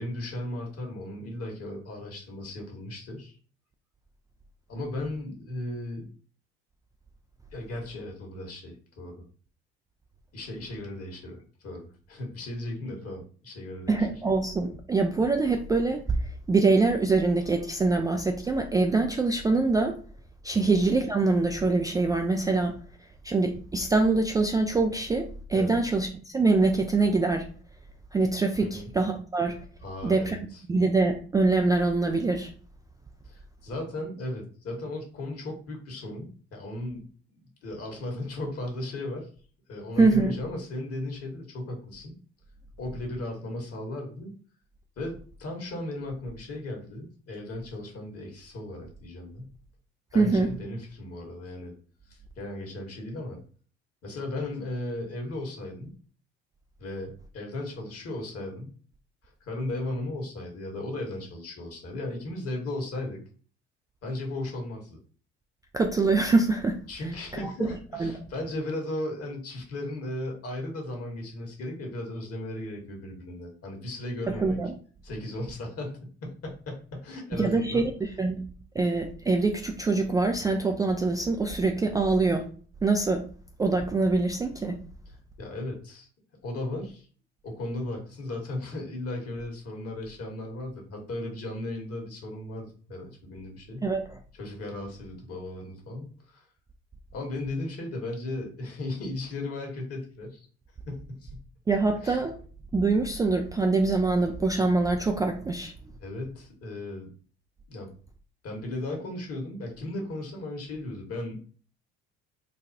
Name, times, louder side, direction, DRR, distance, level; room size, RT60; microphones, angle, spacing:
voice 1, 0.0-3.4 4.7-6.1 7.5-9.2 10.3-14.0 20.5-20.7 25.5-25.8 28.6-28.9 29.8-30.6 33.2-37.0 37.3-39.3 39.7-42.2 42.8-44.3 45.0-49.5 50.1-51.7 52.4-53.4 54.0-55.9 56.8-58.8 59.2-63.2 64.0-65.0 66.9-74.6 75.0-77.9 85.4-86.1 86.4-87.1 87.4-93.9 94.3-96.5 97.1-100.5 100.9-101.4 102.0-102.2 106.0-107.1 107.7-107.9 108.4-111.4, left 1 dB, 45° left, 2 dB, 1.5 m, -36 dB
voice 2, 13.9-16.0 16.5-20.0 20.4-22.8 23.2-26.1 26.3-27.4 28.1-29.6 30.0-30.4 30.7-32.5 40.0-40.4 50.1-50.5 65.7-66.8 67.3-68.1 74.4-74.7 77.3-78.4 78.8-82.4 82.8-83.2 83.6-84.8 93.8-94.2 101.7-102.3 102.7-105.7, right 3 dB, 10° right, 3 dB, 0.3 m, -24 dB
3.9 x 2.3 x 2.7 m, 0.41 s
hypercardioid pair, 60°, 32 cm